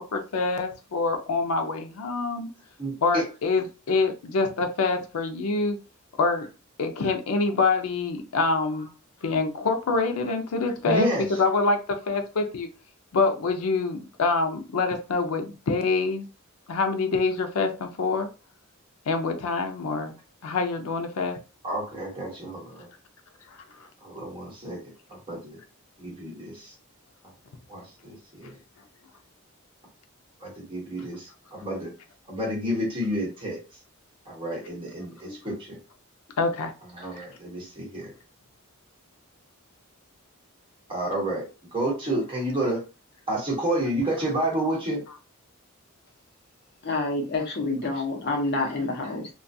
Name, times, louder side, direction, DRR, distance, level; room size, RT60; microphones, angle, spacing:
voice 1, 0.1-2.5 3.0-5.8 6.2-6.5 6.8-8.9 9.2-12.7 13.1-16.2 16.7-18.3 19.1-20.1 20.4-21.4 23.5-23.9 35.2-35.4 36.4-36.7, left 3 dB, 90° left, 5 dB, 0.5 m, -26 dB
voice 2, 2.8-3.3 6.3-6.5 8.7-8.9 10.2-10.3 10.8-11.4 21.6-22.9 24.0-24.8 25.1-25.6 26.0-26.7 27.7-28.5 30.4-31.9 32.3-33.6 34.3-35.8 36.8-38.1 40.9-42.8 43.3-45.0 47.4-47.5 49.0-49.1, right 1 dB, 25° right, -3 dB, 1.1 m, -30 dB
voice 3, 46.8-49.3, left 2 dB, 50° left, 1 dB, 0.7 m, -28 dB
2.3 x 2.2 x 2.6 m, 0.31 s
head